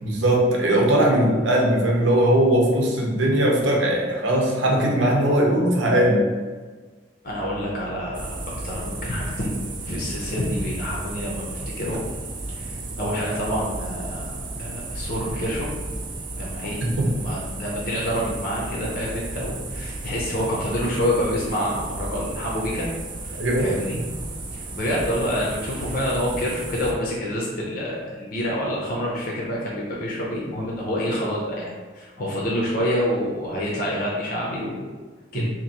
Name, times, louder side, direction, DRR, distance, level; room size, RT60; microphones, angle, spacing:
voice 1, 0.0-6.2 16.8-17.1 23.3-23.7 35.3-35.4, right 1 dB, 80° right, -1 dB, 0.8 m, -20 dB
voice 2, 7.2-8.3 8.6-12.0 12.5-15.7 16.3-22.9 23.2-24.0 24.5-34.9 35.3-35.5, equal, 50° left, -4 dB, 0.6 m, -27 dB
sound 1, 8.1-26.9, right 2 dB, 25° right, 0.3 m, -34 dB
2.9 x 2.6 x 4.0 m, 1.4 s
head